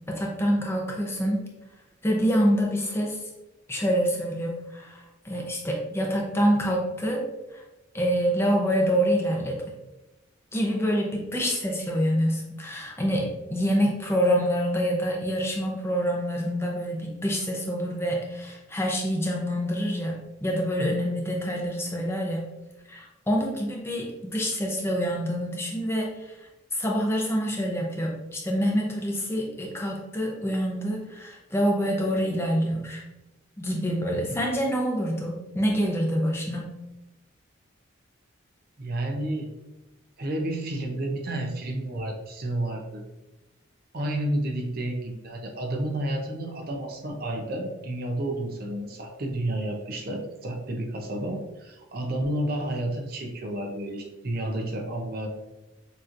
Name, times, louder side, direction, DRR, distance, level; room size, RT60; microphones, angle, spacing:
voice 1, 0.1-1.4 2.0-3.2 3.7-7.2 7.5-7.6 7.9-9.6 10.5-22.5 22.9-26.3 26.7-33.0 33.6-36.7, equal, 10° left, -1 dB, 0.7 m, -26 dB
voice 2, 38.8-39.5 40.2-43.0 43.9-55.3, right 1 dB, 45° right, 1 dB, 0.7 m, -31 dB
6.6 x 3.0 x 2.5 m, 1.0 s
head